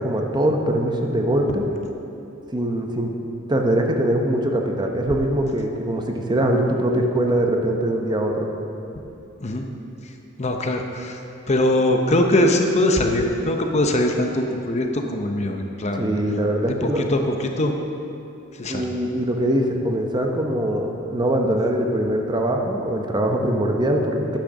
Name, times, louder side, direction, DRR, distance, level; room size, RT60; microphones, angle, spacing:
voice 1, 0.0-1.6 2.5-3.1 3.5-8.5 16.0-17.1 18.7-24.4, right 1 dB, 20° right, 2 dB, 0.8 m, -22 dB
voice 2, 10.4-11.2 11.5-16.1 16.7-17.7 18.6-18.9, left 1 dB, 35° left, 3 dB, 0.7 m, -21 dB
10.0 x 6.3 x 6.3 m, 2.8 s
head